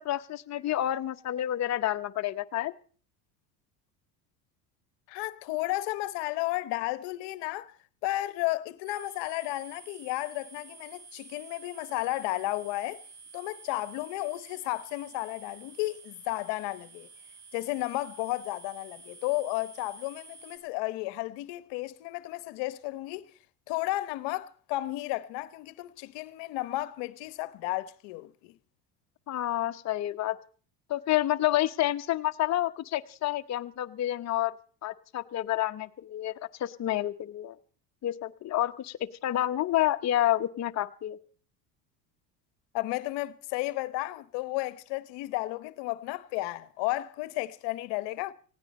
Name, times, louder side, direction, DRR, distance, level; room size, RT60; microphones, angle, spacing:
voice 1, 0.0-2.7 29.3-30.4 30.9-34.5 34.8-36.3 36.6-37.6 38.0-41.2, left 13 dB, 35° left, 0.9 m, -29 dB
voice 2, 5.1-7.7 8.0-13.0 13.3-17.1 17.5-23.3 23.7-28.5 42.7-48.3, left 18 dB, 65° left, 1.0 m, -33 dB
sound 1, 8.9-20.6, right 4 dB, 60° right, 5.0 m, -51 dB
18.5 x 16.5 x 4.2 m
hypercardioid pair, 85°, 47 cm